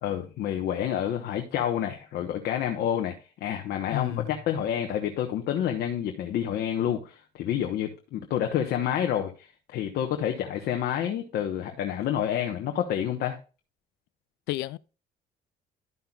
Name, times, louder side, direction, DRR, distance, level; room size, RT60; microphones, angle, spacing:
voice 1, 0.0-13.4, left 10 dB, 70° left, 1.1 m, -29 dB
voice 2, 3.9-4.3 14.5-14.8, left 17 dB, 90° left, 0.4 m, -30 dB
12.5 x 5.6 x 2.4 m
cardioid pair, 110°, 17 cm